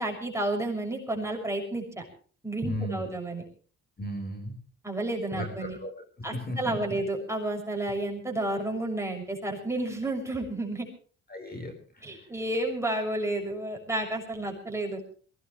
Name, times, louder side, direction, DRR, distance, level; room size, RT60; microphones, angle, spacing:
voice 1, 0.0-2.0 2.4-3.4 4.8-5.8 6.2-10.9 12.0-15.0, right 2 dB, 10° right, 1 dB, 6.6 m, -31 dB
voice 2, 2.6-3.1 4.0-4.6 5.3-5.9 6.3-7.0 11.3-12.2, left 1 dB, 30° left, 4 dB, 4.9 m, -35 dB
23.0 x 18.0 x 3.3 m, 0.42 s
cardioid pair, 90°, 30 cm